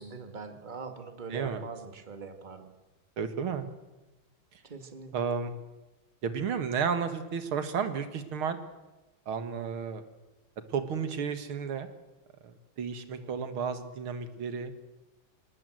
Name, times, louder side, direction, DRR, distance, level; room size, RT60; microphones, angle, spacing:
voice 1, 0.0-2.7 4.7-5.1 13.2-13.5, right 5 dB, 20° right, 7 dB, 2.0 m, -42 dB
voice 2, 1.3-1.7 3.2-3.7 5.1-5.5 6.2-8.6 9.3-10.0 10.7-11.9 12.4-14.7, right 6 dB, 80° right, 10 dB, 2.5 m, -32 dB
26.0 x 19.0 x 7.8 m, 1.1 s
omnidirectional pair, 2.3 m